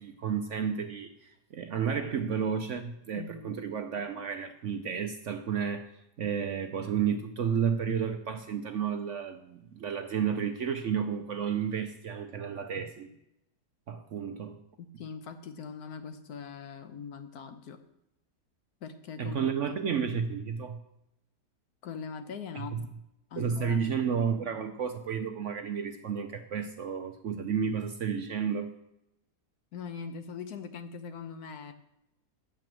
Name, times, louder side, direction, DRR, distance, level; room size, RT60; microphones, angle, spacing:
voice 1, 0.0-5.9 6.2-13.1 13.9-14.6 19.2-20.8 22.7-22.8 23.4-28.7, right 7 dB, 60° right, 7 dB, 0.8 m, -32 dB
voice 2, 3.1-3.5 6.4-6.5 14.8-17.8 18.8-19.5 21.8-22.8 23.3-24.0 29.7-31.7, left 5 dB, 65° left, 8 dB, 1.3 m, -41 dB
9.1 x 6.9 x 7.5 m, 0.84 s
omnidirectional pair, 1.8 m